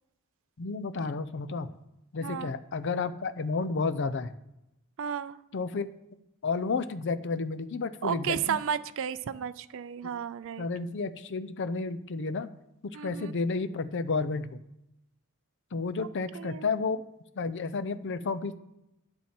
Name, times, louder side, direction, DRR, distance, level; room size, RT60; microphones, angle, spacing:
voice 1, 0.6-1.7 2.1-4.3 5.5-5.9 6.4-8.6 10.0-10.1 10.6-12.5 12.8-14.6 15.7-17.0 17.4-18.6, left 4 dB, 55° left, 12 dB, 0.5 m, -31 dB
voice 2, 2.2-2.5 5.0-5.4 8.0-10.7 12.9-13.3 16.3-16.7, right 8 dB, 60° right, 13 dB, 0.4 m, -33 dB
10.5 x 7.2 x 4.4 m, 0.87 s
head